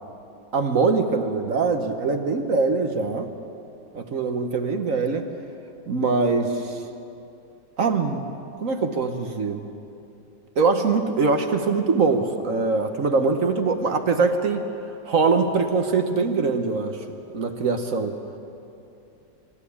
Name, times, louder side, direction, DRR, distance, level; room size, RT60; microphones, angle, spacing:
voice 1, 0.5-3.3 3.9-5.3 5.9-6.8 7.8-8.2 8.6-9.6 10.6-14.7 15.1-17.0 17.3-18.2, right 4 dB, 50° right, 6 dB, 1.3 m, -23 dB
25.0 x 12.5 x 8.5 m, 2.7 s
omnidirectional pair, 2.0 m